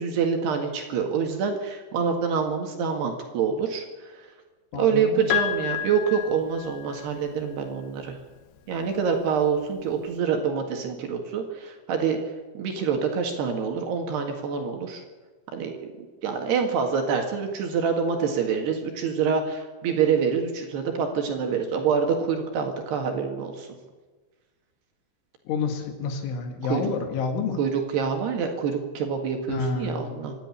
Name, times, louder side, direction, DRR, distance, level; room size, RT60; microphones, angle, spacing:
voice 1, 0.0-4.3 4.7-8.2 8.7-12.2 12.6-15.0 15.5-15.7 16.0-23.7 26.6-26.8 27.6-30.4, right 6 dB, 60° right, 3 dB, 3.6 m, -26 dB
voice 2, 4.7-5.3 25.5-27.6 29.5-30.2, left 5 dB, 70° left, 5 dB, 4.2 m, -29 dB
Piano, 5.3-7.3 8.6-8.7, left 12 dB, 90° left, 4.1 m, -30 dB
26.0 x 10.5 x 9.9 m, 1.3 s
omnidirectional pair, 5.9 m